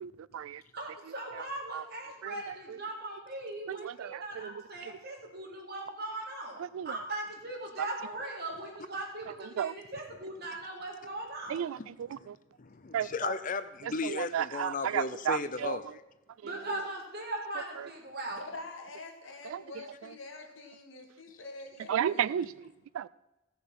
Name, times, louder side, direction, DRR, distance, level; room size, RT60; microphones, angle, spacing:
voice 1, 0.0-0.6 1.7-1.8 2.2-2.3 3.7-4.5 6.7-6.9 9.6-9.7 11.5-12.4 12.9-13.3 14.0-15.8 16.4-16.5 19.5-19.6 21.9-22.5 22.9-23.1, right 9 dB, 85° right, 0.3 m, -33 dB
voice 2, 0.7-11.7 16.4-18.4, right 2 dB, 50° right, 3.6 m, -39 dB
voice 3, 11.8-12.3 12.6-16.0, left 4 dB, 40° left, 0.5 m, -36 dB
voice 4, 18.3-22.4, left 2 dB, 70° left, 2.2 m, -46 dB
16.0 x 6.8 x 5.9 m
head